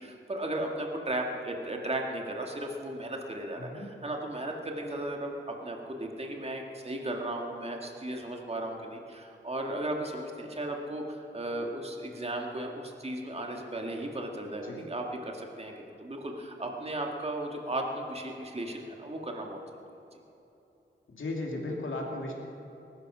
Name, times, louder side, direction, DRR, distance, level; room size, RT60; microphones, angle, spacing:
voice 1, 0.0-19.6, right 1 dB, 30° right, 1 dB, 2.0 m, -35 dB
voice 2, 21.1-22.3, left 2 dB, 90° left, 0 dB, 2.6 m, -35 dB
20.0 x 12.5 x 5.7 m, 3.0 s
wide cardioid pair, 115°, 20 cm